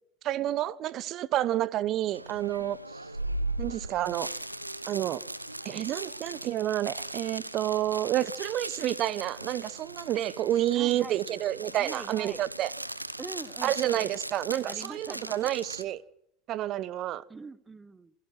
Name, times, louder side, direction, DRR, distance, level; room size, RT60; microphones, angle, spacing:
voice 1, 0.2-2.8 3.6-4.3 4.9-5.2 5.6-12.7 13.6-16.0 16.5-17.2, right 13 dB, 40° right, 1.0 m, -29 dB
sound 1, 2.1-15.8, right 1 dB, 90° right, 1.2 m, -38 dB
voice 2, 10.7-11.2 11.7-12.4 13.2-14.1 14.7-15.5 17.3-18.1, right 4 dB, 15° right, 1.2 m, -43 dB
28.0 x 17.0 x 6.1 m
figure-of-eight pair, 80°, 0 cm